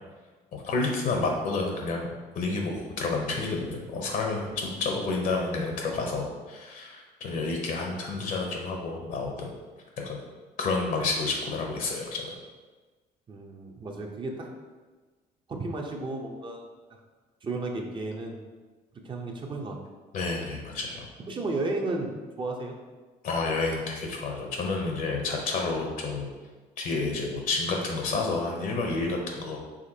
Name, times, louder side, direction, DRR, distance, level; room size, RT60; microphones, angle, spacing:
voice 1, 0.5-2.1 2.4-9.5 10.0-10.2 10.6-12.3 20.1-21.1 23.2-26.3 26.8-29.6, left 3 dB, 60° left, 1 dB, 0.7 m, -30 dB
voice 2, 13.3-14.5 15.5-16.6 17.4-18.4 18.9-19.8 21.3-22.8, right 2 dB, 30° right, 1 dB, 0.6 m, -33 dB
5.0 x 3.3 x 2.7 m, 1.3 s
cardioid pair, 110°, 16 cm